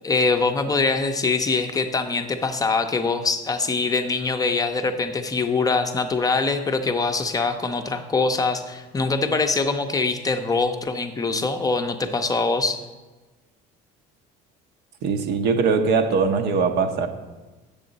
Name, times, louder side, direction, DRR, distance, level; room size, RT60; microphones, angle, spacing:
voice 1, 0.0-12.8, left 3 dB, 20° left, 6 dB, 0.5 m, -23 dB
voice 2, 15.0-17.1, right 5 dB, 65° right, 6 dB, 0.9 m, -21 dB
7.5 x 6.9 x 3.9 m, 1.2 s
cardioid pair, 120°, 19 cm